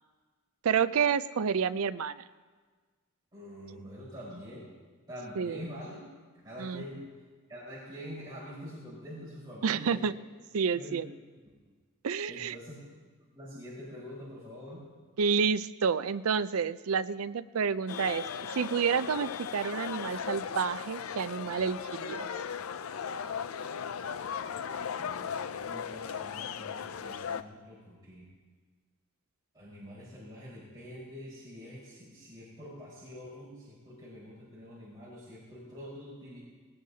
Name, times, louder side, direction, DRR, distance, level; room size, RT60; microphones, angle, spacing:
voice 1, 0.6-2.2 5.4-5.6 6.6-6.8 9.6-10.1 10.5-11.1 12.0-12.6 15.2-18.3 18.5-22.3, right 6 dB, 85° right, 14 dB, 0.5 m, -29 dB
voice 2, 3.3-4.7 5.1-6.0 6.4-7.0 7.5-10.1 10.7-11.0 12.3-12.9 13.3-14.8 24.7-28.3 29.5-36.4, equal, 20° right, -9 dB, 4.6 m, -45 dB
sound 1, 17.9-27.4, left 7 dB, 80° left, 0.5 m, -37 dB
19.0 x 19.0 x 2.8 m, 1.5 s
head